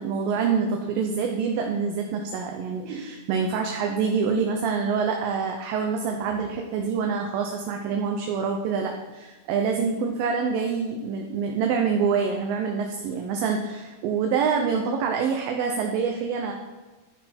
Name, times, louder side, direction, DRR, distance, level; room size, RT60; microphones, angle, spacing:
voice 1, 0.0-16.5, right 5 dB, 75° right, 2 dB, 2.5 m, -26 dB
13.0 x 5.9 x 4.4 m, 1.2 s
omnidirectional pair, 4.3 m